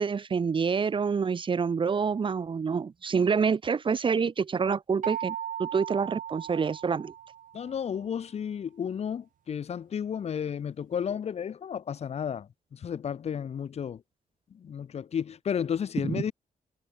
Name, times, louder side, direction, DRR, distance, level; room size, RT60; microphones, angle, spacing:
voice 1, 0.0-5.3 5.6-7.1, right 6 dB, 35° right, 4.1 m, -27 dB
sound 1, 5.0-7.8, right 10 dB, 65° right, 5.2 m, -37 dB
voice 2, 7.5-14.0 14.5-16.3, left 8 dB, 45° left, 2.0 m, -33 dB
wide cardioid pair, 155°, 14 cm